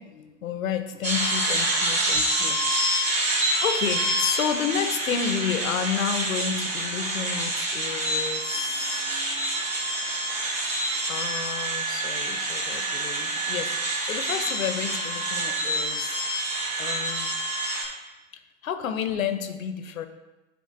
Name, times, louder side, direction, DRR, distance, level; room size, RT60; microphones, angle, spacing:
voice 1, 0.0-9.1 11.1-16.2 16.8-17.3 18.6-20.1, left 8 dB, 85° left, 9 dB, 0.8 m, -31 dB
sound 1, 1.0-17.8, right 1 dB, 20° right, 2.3 m, -27 dB
9.4 x 3.7 x 3.8 m, 1.1 s
hypercardioid pair, 110°, 40 cm